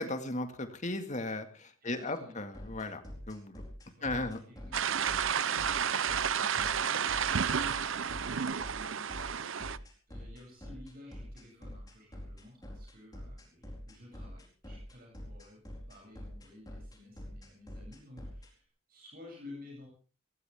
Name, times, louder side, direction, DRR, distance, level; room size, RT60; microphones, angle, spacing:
voice 1, 0.0-3.6 4.0-4.4, left 2 dB, 35° left, 7 dB, 2.0 m, -36 dB
voice 2, 1.8-2.4 4.0-9.5 10.1-19.9, left 2 dB, 45° right, -1 dB, 7.8 m, -54 dB
sound 1, 2.5-18.5, left 1 dB, 20° left, 4.3 m, -46 dB
water flows creek, 4.7-9.8, right 7 dB, 65° right, 0.7 m, -31 dB
18.5 x 18.0 x 3.6 m, 0.38 s
head